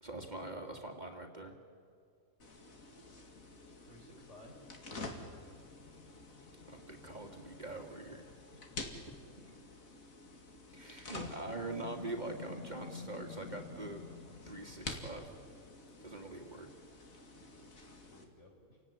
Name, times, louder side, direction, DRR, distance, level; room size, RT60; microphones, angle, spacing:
voice 1, 0.0-1.5 6.7-8.2 10.7-14.0 14.5-15.3 16.0-16.7, right 2 dB, 30° right, 3 dB, 2.2 m, -43 dB
sound 1, 2.4-18.2, left 3 dB, 75° left, 2.7 m, -48 dB
voice 2, 3.9-4.7 8.5-8.8 18.1-18.8, left 1 dB, 55° left, 1 dB, 5.2 m, -58 dB
29.0 x 17.5 x 9.8 m, 2.3 s
omnidirectional pair, 1.4 m